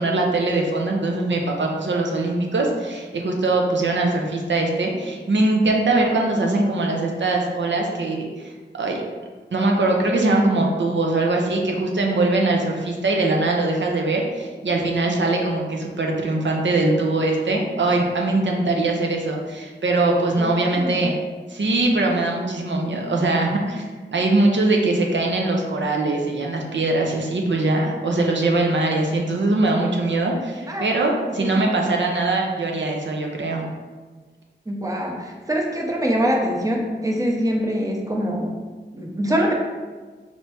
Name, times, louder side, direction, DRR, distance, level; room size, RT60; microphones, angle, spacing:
voice 1, 0.0-9.0 9.5-21.2 21.5-23.8 24.1-33.7, right 2 dB, 70° right, 0 dB, 0.7 m, -22 dB
voice 2, 20.4-21.1 30.7-30.8 31.4-31.6 34.7-38.5 38.9-39.5, equal, 15° right, 0 dB, 0.7 m, -24 dB
4.3 x 2.9 x 3.4 m, 1.4 s
wide cardioid pair, 85°, 19 cm